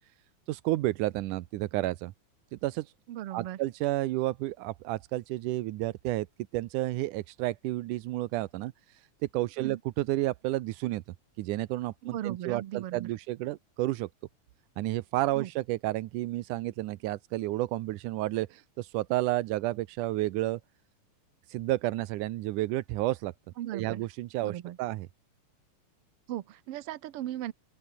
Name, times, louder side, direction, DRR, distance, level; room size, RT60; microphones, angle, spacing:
voice 1, 0.5-2.1 2.5-2.9 3.3-6.3 6.5-9.0 9.3-11.0 11.4-14.1 14.8-20.6 21.5-23.3 23.7-25.1, right 17 dB, 90° right, 2.3 m, -31 dB
voice 2, 3.1-3.6 9.6-9.8 12.0-13.1 15.4-15.5 23.6-24.0 24.4-24.8 26.3-27.5, right 13 dB, 60° right, 1.7 m, -37 dB
open air
omnidirectional pair, 3.5 m